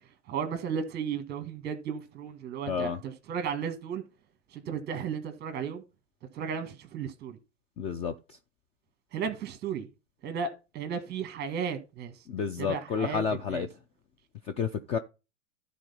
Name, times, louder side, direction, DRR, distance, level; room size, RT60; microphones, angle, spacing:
voice 1, 0.3-4.0 4.5-5.8 6.3-7.4 9.1-9.9 10.2-12.1 12.6-13.2 13.5-13.7, right 7 dB, 25° right, 1.7 m, -34 dB
voice 2, 2.7-3.0 7.8-8.4 12.3-13.7 14.4-15.0, left 6 dB, 15° left, 0.4 m, -30 dB
12.5 x 4.3 x 5.5 m
hypercardioid pair, 120°, 37 cm